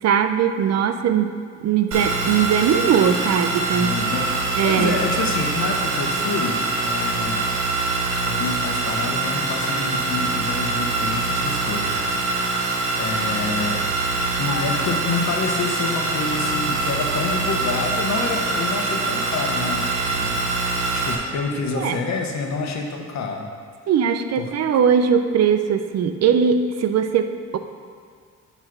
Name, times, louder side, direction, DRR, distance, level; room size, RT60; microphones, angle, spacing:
voice 1, 0.0-1.3 1.6-3.9 4.6-4.9 21.8-22.0 23.9-27.6, right 7 dB, 60° right, 8 dB, 0.6 m, -20 dB
sound 1, 1.9-21.2, right 3 dB, 85° right, 1.2 m, -24 dB
voice 2, 3.6-4.3 4.6-7.5 8.2-13.8 14.4-20.4 20.7-23.5 24.4-24.5, left 4 dB, 65° left, 2 dB, 1.1 m, -28 dB
9.5 x 3.3 x 6.0 m, 2.1 s
cardioid pair, 90°, 30 cm